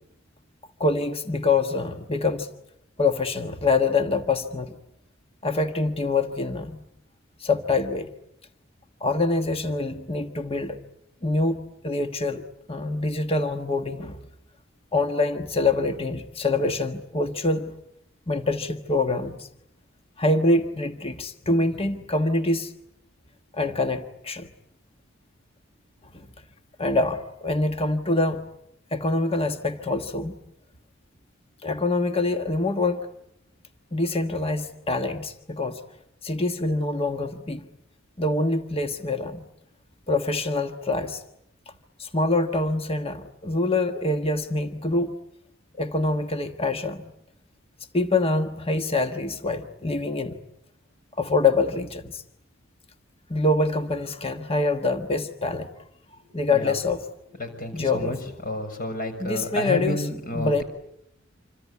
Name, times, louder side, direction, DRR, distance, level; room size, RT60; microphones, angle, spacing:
voice 1, 0.8-2.5 3.0-4.7 5.4-6.8 7.4-8.1 9.0-10.8 11.2-14.2 14.9-17.7 18.3-19.5 20.2-22.7 23.5-24.5 26.1-26.3 26.8-28.5 28.9-30.3 31.6-33.1 33.9-35.8 36.2-37.7 38.2-39.5 40.1-41.2 42.0-45.1 45.8-47.1 47.9-50.4 51.2-52.2 53.3-55.7 56.3-57.1 57.7-58.2 59.2-60.1 60.3-60.6, left 2 dB, 30° left, 7 dB, 1.4 m, -25 dB
voice 2, 57.4-58.2 58.4-60.6, left 1 dB, 45° left, 7 dB, 6.5 m, -30 dB
27.5 x 25.5 x 8.4 m, 0.77 s
head